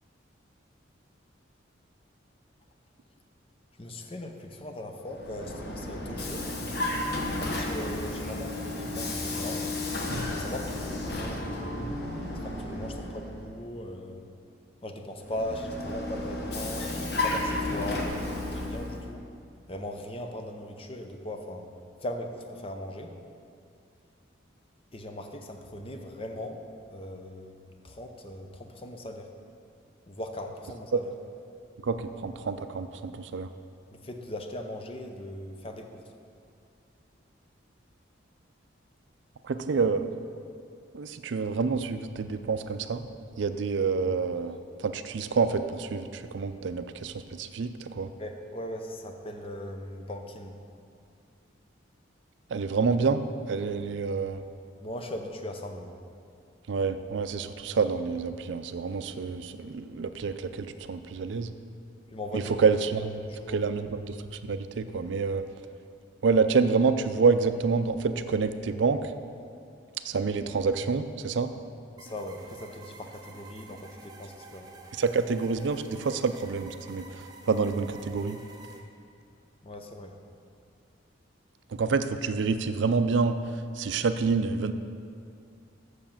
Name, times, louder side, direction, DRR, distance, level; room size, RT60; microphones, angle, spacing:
voice 1, 3.8-6.5 7.4-9.7 10.1-11.9 12.4-14.2 14.8-19.2 19.7-21.7 22.0-23.1 24.9-26.6 26.9-27.6 27.8-29.3 30.1-31.1 34.0-36.1 48.2-50.6 54.8-56.0 62.1-62.6 63.3-63.7 72.0-74.7 79.6-80.2, left 1 dB, 30° left, 4 dB, 0.6 m, -39 dB
Vehicle, 5.0-13.5 15.2-19.1, left 2 dB, 55° left, 1.1 m, -33 dB
voice 2, 31.8-33.5 39.4-40.1 40.9-43.1 43.4-48.1 52.5-53.2 53.5-54.4 56.7-61.5 62.3-64.2 64.5-65.4 66.2-69.1 70.0-71.5 74.9-78.4 81.7-83.4 83.8-84.7, right 4 dB, 65° right, 10 dB, 0.4 m, -27 dB
sound 1, 72.0-78.8, right 3 dB, 20° right, 0.6 m, -50 dB
7.1 x 6.4 x 7.2 m, 2.4 s
head